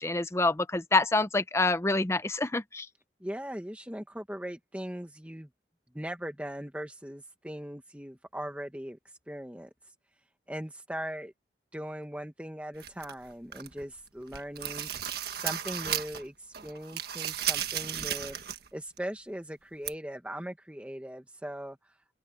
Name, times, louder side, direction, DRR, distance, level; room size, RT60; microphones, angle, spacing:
voice 1, 0.0-2.9, left 2 dB, 15° left, 0.7 m, -27 dB
voice 2, 3.2-5.5 5.9-9.0 9.3-9.7 10.5-11.3 11.7-14.9 15.3-18.4 18.7-21.8, equal, 5° right, 1.5 m, -39 dB
sound 1, 12.8-13.8 14.2-16.3 16.5-18.7 19.0-19.1 19.9-20.0, right 10 dB, 60° right, 1.6 m, -34 dB
open air
head